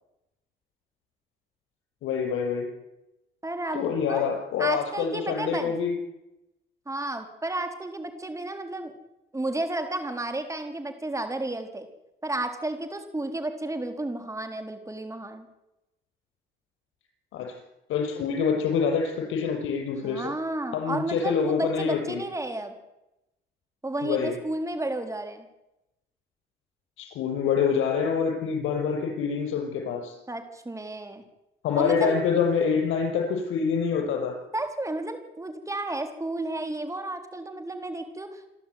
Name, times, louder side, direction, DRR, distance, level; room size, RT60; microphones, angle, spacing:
voice 1, 2.0-2.7 3.7-6.0 17.3-17.5 17.9-20.3 20.7-22.2 24.0-24.4 27.0-30.2 31.6-34.4, left 6 dB, 85° left, 3 dB, 6.0 m, -26 dB
voice 2, 3.4-5.7 6.9-8.9 9.3-11.9 12.2-15.5 20.0-22.7 23.8-25.5 30.3-31.2 31.8-32.2 34.5-38.5, right 2 dB, 15° right, 6 dB, 4.1 m, -32 dB
27.5 x 12.5 x 9.6 m, 0.93 s
cardioid pair, 90°, 20 cm